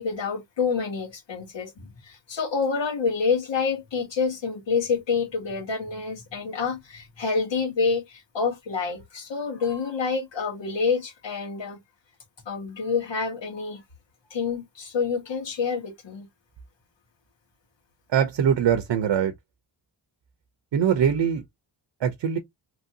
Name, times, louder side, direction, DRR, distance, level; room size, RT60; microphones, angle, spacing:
voice 1, 0.0-11.8 12.4-13.8 14.3-16.3, left 5 dB, 70° left, 1.5 m, -27 dB
voice 2, 18.1-19.3 20.7-21.4 22.0-22.4, right 8 dB, 70° right, 0.7 m, -22 dB
3.0 x 2.6 x 2.8 m
wide cardioid pair, 135°, 45 cm